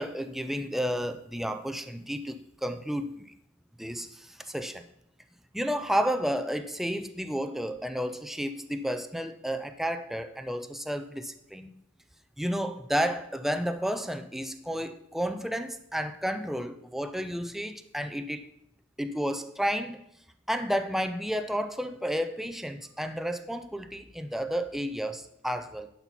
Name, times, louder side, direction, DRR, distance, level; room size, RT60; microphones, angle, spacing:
voice 1, 0.0-3.3 3.8-4.8 5.5-11.7 12.4-18.5 19.0-20.0 20.5-25.9, equal, ahead, 9 dB, 0.5 m, -31 dB
11.0 x 4.3 x 5.8 m, 0.77 s
head